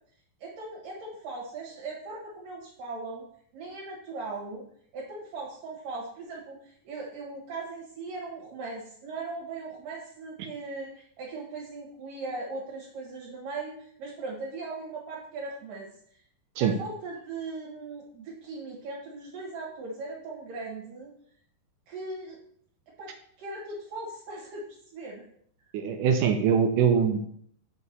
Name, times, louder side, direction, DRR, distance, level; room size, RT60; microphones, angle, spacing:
voice 1, 0.4-3.2 3.5-4.6 4.9-13.7 14.0-15.9 16.6-21.1 21.9-22.4 23.0-23.1 23.4-24.6 24.9-25.2, right 3 dB, 65° right, -4 dB, 3.0 m, -39 dB
voice 2, 25.7-27.3, right 7 dB, 80° right, 6 dB, 1.9 m, -23 dB
6.4 x 4.7 x 6.7 m, 0.65 s
omnidirectional pair, 4.4 m